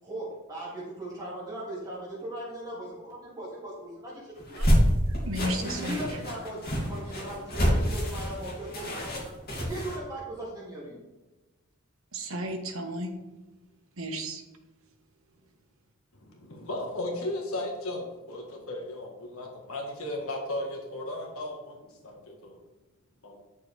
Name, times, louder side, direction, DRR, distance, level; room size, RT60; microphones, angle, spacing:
voice 1, 0.0-4.6 5.6-9.3 9.6-11.0, right 1 dB, 15° right, -6 dB, 2.6 m, -38 dB
sound 1, 4.4-10.0, equal, 45° left, 2.5 m, -27 dB
voice 2, 5.3-6.2 12.1-13.1 14.0-14.4, equal, 70° right, 4 dB, 1.3 m, -33 dB
voice 3, 16.1-22.6 23.2-23.4, left 1 dB, 80° left, 0 dB, 1.6 m, -36 dB
10.5 x 6.9 x 3.4 m, 1.1 s
head